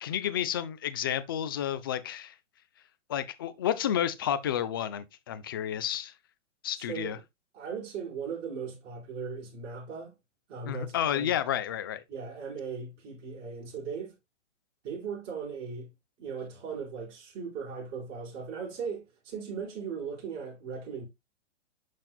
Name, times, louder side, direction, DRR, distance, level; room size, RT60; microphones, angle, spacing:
voice 1, 0.0-2.3 3.1-6.1 6.6-7.2 10.7-12.0, left 10 dB, 20° left, 0.3 m, -31 dB
voice 2, 6.8-7.2 7.5-10.1 10.5-11.3 12.1-14.1 14.8-15.9 16.2-21.1, right 6 dB, 30° right, 4.7 m, -38 dB
12.0 x 4.2 x 2.3 m
hypercardioid pair, 140°, 37 cm